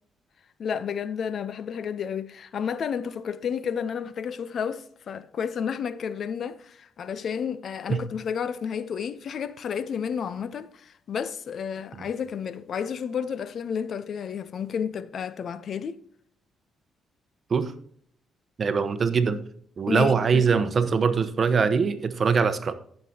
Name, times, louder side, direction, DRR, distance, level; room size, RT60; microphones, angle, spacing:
voice 1, 0.6-16.0 19.9-20.4, left 7 dB, 55° left, 0.6 m, -31 dB
voice 2, 18.6-19.4 19.8-22.7, right 5 dB, 45° right, 0.9 m, -22 dB
15.0 x 6.7 x 2.8 m
cardioid pair, 90°, 0 cm